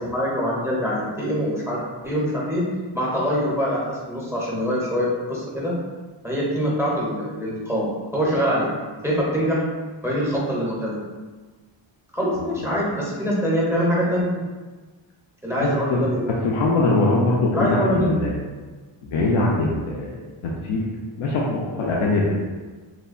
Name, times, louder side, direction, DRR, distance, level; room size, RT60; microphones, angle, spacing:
voice 1, 0.0-1.8 2.0-2.7 2.9-5.7 6.2-8.7 9.0-9.6 10.0-11.0 12.1-14.4 15.4-16.3 17.5-18.2, equal, 5° right, -5 dB, 0.5 m, -24 dB
voice 2, 12.3-12.6 15.6-18.3 19.1-20.2 20.4-20.9 21.2-22.3, left 2 dB, 80° left, -3 dB, 0.6 m, -22 dB
3.2 x 2.1 x 2.4 m, 1.3 s
wide cardioid pair, 105°, 49 cm